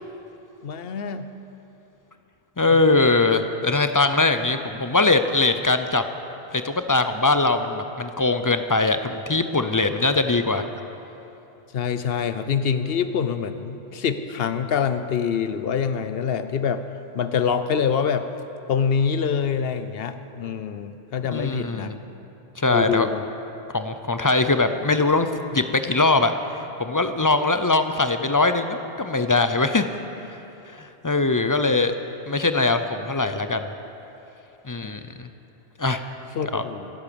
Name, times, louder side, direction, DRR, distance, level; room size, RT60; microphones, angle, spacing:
voice 1, 0.6-1.3 2.7-2.8 11.7-16.8 17.1-18.3 18.7-21.9 22.7-23.3 34.8-35.0 36.4-36.9, left 7 dB, 70° left, 11 dB, 0.9 m, -25 dB
voice 2, 2.6-6.0 6.5-10.6 21.3-22.0 22.6-23.1 23.7-29.8 30.7-31.9 32.3-33.7 34.6-35.3 35.8-36.0 36.4-36.6, left 3 dB, 25° left, 9 dB, 0.5 m, -21 dB
15.5 x 11.0 x 6.9 m, 3.0 s
omnidirectional pair, 1.1 m